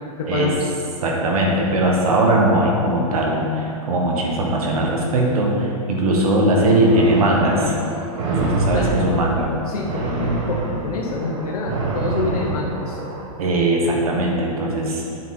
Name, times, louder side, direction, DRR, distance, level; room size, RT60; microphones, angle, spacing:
voice 1, 0.2-0.7 8.7-9.2 9.7-13.0, left 3 dB, 75° left, -2 dB, 1.0 m, -26 dB
voice 2, 1.0-7.7 8.2-9.5 13.4-15.0, right 1 dB, 70° right, -2 dB, 1.5 m, -19 dB
sound 1, 6.9-13.3, right 2 dB, 55° right, 1.3 m, -26 dB
8.2 x 4.1 x 4.3 m, 2.8 s
hypercardioid pair, 145°, 19 cm